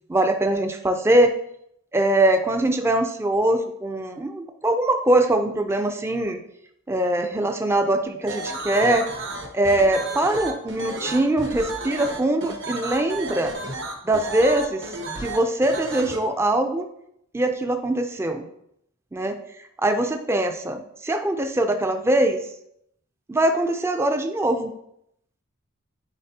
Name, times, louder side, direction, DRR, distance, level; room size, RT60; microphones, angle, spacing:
voice 1, 0.1-1.3 1.9-6.4 6.9-9.0 9.5-13.5 14.0-16.9 17.3-18.5 19.1-19.4 19.8-22.4 23.3-24.7, right 1 dB, 10° right, 6 dB, 0.4 m, -22 dB
sound 1, 8.3-16.2, right 2 dB, 65° right, 1.1 m, -32 dB
9.9 x 4.0 x 2.8 m, 0.76 s
head